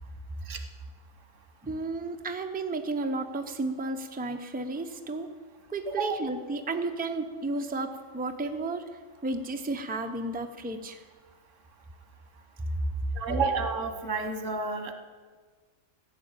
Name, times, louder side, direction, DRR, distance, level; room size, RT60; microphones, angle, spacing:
voice 1, 1.6-5.3 5.7-8.8 9.2-11.0, right 2 dB, 10° right, 5 dB, 0.6 m, -33 dB
voice 2, 5.9-6.2 13.1-14.9, right 4 dB, 85° right, 6 dB, 1.6 m, -30 dB
15.0 x 6.1 x 8.9 m, 1.4 s
omnidirectional pair, 1.3 m